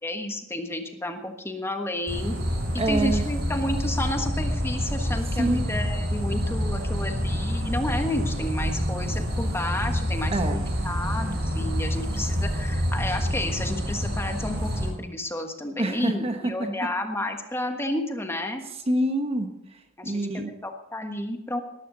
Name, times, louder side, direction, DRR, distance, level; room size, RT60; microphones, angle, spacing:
voice 1, 0.0-2.3 2.7-18.6 20.0-21.6, left 1 dB, 15° left, 5 dB, 1.4 m, -31 dB
sound 1, 2.1-14.9, equal, 55° right, 6.2 m, -27 dB
voice 2, 2.8-3.2 5.4-5.6 10.3-10.7 15.8-16.7 18.9-20.5, right 1 dB, 30° right, 6 dB, 1.1 m, -26 dB
18.0 x 12.5 x 4.0 m, 0.85 s
head